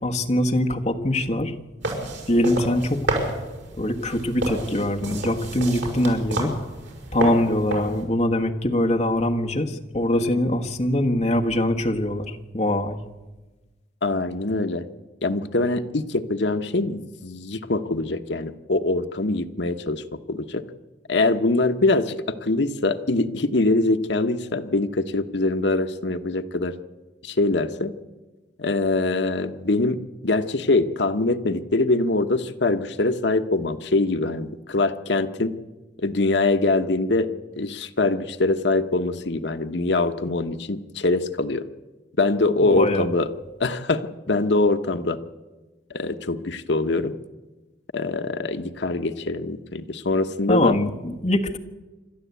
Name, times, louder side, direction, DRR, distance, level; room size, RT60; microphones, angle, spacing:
voice 1, 0.0-1.5 2.3-3.0 3.8-6.5 7.1-13.0 42.7-43.1 50.5-51.6, left 1 dB, 35° left, 3 dB, 1.4 m, -23 dB
sound 1, 1.8-8.0, right 2 dB, 80° right, 5.4 m, -30 dB
voice 2, 14.0-14.8 15.2-20.0 20.3-20.6 21.1-26.7 27.2-27.9 28.6-30.0 30.2-35.5 36.0-37.3 37.6-41.7 42.2-43.3 43.6-45.2 45.9-47.1 47.9-50.8, left 2 dB, 70° left, 8 dB, 1.0 m, -23 dB
27.0 x 12.5 x 8.3 m, 1.2 s
head